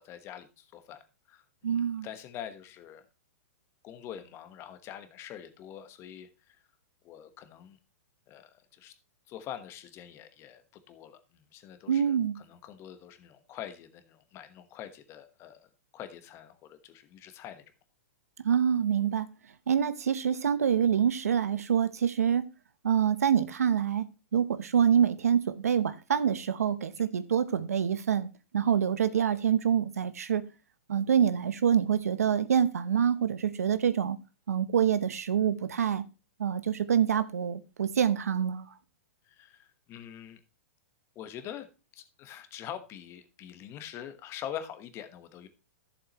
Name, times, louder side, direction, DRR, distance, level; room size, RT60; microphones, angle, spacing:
voice 1, 0.0-3.1 3.8-6.6 7.0-7.8 8.3-8.9 9.3-15.7 15.9-17.6 26.9-27.1 39.2-40.4 41.1-41.7 41.9-45.5, left 10 dB, 35° left, 1.2 m, -45 dB
voice 2, 1.6-2.1 11.9-12.4 18.4-19.3 19.7-22.5 22.8-24.1 24.3-30.5 30.9-34.2 34.5-36.0 36.4-38.7, right 8 dB, 85° right, 0.9 m, -26 dB
11.5 x 7.2 x 3.0 m
hypercardioid pair, 125°, 8 cm